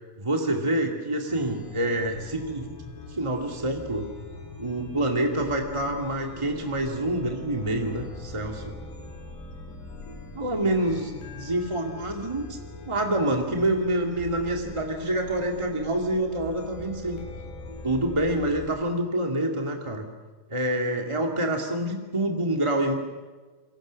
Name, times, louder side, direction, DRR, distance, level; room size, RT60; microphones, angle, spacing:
voice 1, 0.2-2.8 3.1-4.1 4.6-8.7 10.3-12.6 12.9-17.2 17.8-20.0 20.5-22.9, right 1 dB, 20° right, 2 dB, 0.8 m, -27 dB
Chime, 1.2-18.7, left 3 dB, 75° left, 5.9 m, -41 dB
29.0 x 24.0 x 6.4 m, 1.4 s
omnidirectional pair, 4.5 m